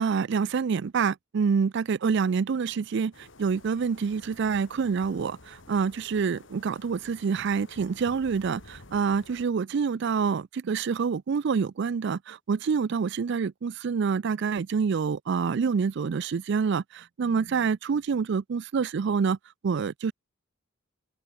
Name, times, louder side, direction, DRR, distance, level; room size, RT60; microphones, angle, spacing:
voice 1, 0.0-3.1 3.4-19.4 19.6-20.1, right 5 dB, 60° right, 0.4 m, -27 dB
sound 1, 3.1-9.5, left 2 dB, 65° left, 2.4 m, -51 dB
open air
head